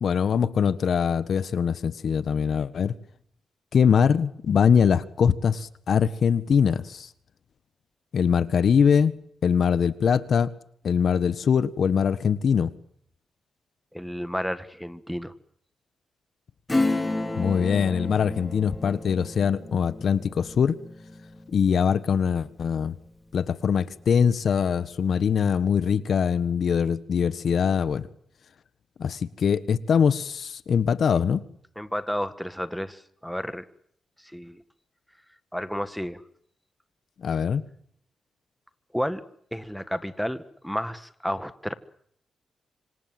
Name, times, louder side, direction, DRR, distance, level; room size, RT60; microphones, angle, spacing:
voice 1, 0.0-2.9 3.7-7.1 8.1-9.1 9.4-10.5 10.8-12.7 17.4-20.8 21.5-23.0 23.3-28.1 29.0-31.4 37.2-37.6, left 7 dB, 65° left, 16 dB, 1.3 m, -22 dB
voice 2, 13.9-15.3 31.7-33.6 34.2-34.6 35.5-36.2 38.9-39.2 39.5-41.7, equal, ahead, 13 dB, 1.7 m, -31 dB
Acoustic guitar / Strum, 16.7-22.9 23.3-23.4, left 2 dB, 20° left, 3.0 m, -31 dB
26.5 x 26.0 x 7.8 m, 0.66 s
cardioid pair, 90°, 0 cm